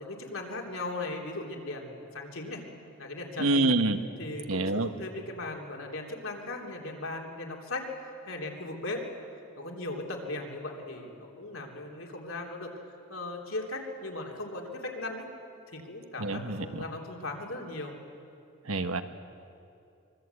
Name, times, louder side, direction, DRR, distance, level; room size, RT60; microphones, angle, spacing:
voice 1, 0.0-2.6 3.0-3.6 4.2-9.0 9.6-12.7 13.1-15.3 15.7-17.9, left 2 dB, 70° left, 1 dB, 3.4 m, -38 dB
voice 2, 3.4-4.0 4.5-4.9 16.2-16.8 18.6-19.0, right 2 dB, 80° right, 8 dB, 1.2 m, -27 dB
25.0 x 22.5 x 8.3 m, 2.6 s
head